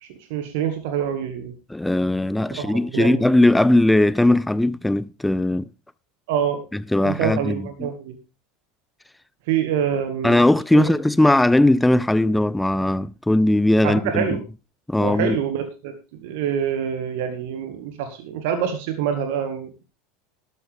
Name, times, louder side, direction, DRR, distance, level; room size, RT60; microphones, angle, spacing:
voice 1, 0.0-1.5 2.5-3.2 6.3-6.6 7.0-8.2 9.5-10.4 10.7-10.9 13.8-14.4 15.0-15.9 16.2-19.8, right 8 dB, 65° right, 2.0 m, -26 dB
voice 2, 1.7-5.6 6.9-7.9 10.2-14.4 14.9-15.4, left 1 dB, 5° left, 0.5 m, -19 dB
12.5 x 12.0 x 3.6 m
figure-of-eight pair, 75°, 0 cm